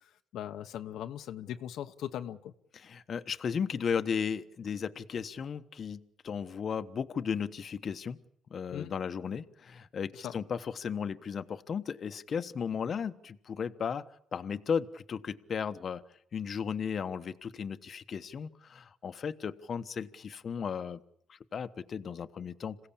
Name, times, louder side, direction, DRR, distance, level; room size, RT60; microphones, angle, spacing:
voice 1, 0.0-2.5 8.7-8.9 10.1-10.3, left 11 dB, 80° left, 1.0 m, -40 dB
voice 2, 2.7-8.2 8.5-14.0 14.3-16.0 16.3-21.0 21.3-22.9, left 6 dB, 50° left, 1.1 m, -35 dB
27.0 x 16.5 x 8.6 m
cardioid pair, 90°, 0 cm